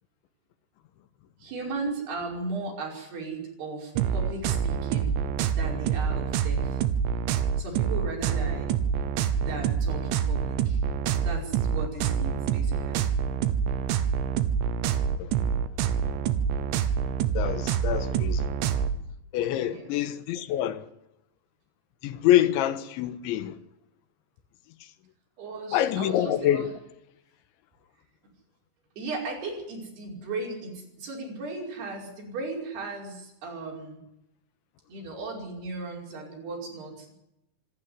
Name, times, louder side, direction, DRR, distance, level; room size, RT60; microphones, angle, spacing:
voice 1, 1.4-5.2 5.5-6.8 7.6-8.8 9.3-10.8 11.2-13.1 19.6-19.9 25.4-26.7 29.0-34.0 34.9-37.2, right 3 dB, 60° right, 7.2 m, -36 dB
sound 1, 4.0-19.0, right 7 dB, 85° right, 3.5 m, -26 dB
voice 2, 17.4-18.5 19.3-20.8 22.0-23.6 25.7-26.6, left 12 dB, 80° left, 3.6 m, -26 dB
26.0 x 13.0 x 9.7 m
omnidirectional pair, 5.3 m